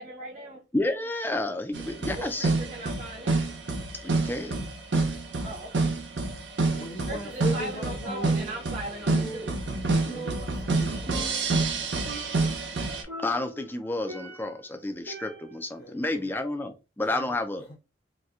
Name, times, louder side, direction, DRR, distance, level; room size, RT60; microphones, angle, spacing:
voice 1, 0.0-0.6 2.1-3.4 5.4-5.9 6.7-9.5, right 1 dB, 40° right, 1.0 m, -39 dB
voice 2, 0.7-2.5 4.0-4.5 13.2-17.7, left 2 dB, 10° left, 0.3 m, -30 dB
sound 1, 1.7-13.0, right 3 dB, 65° right, 0.7 m, -28 dB
voice 3, 6.7-8.3 10.1-11.4 15.8-16.3 17.1-17.4, equal, 55° left, 0.7 m, -39 dB
Percussion, 8.1-8.8 9.1-10.8 11.1-11.8 12.1-12.6 13.1-14.6 15.1-15.7, right 1 dB, 90° right, 1.7 m, -40 dB
4.1 x 2.2 x 2.4 m
head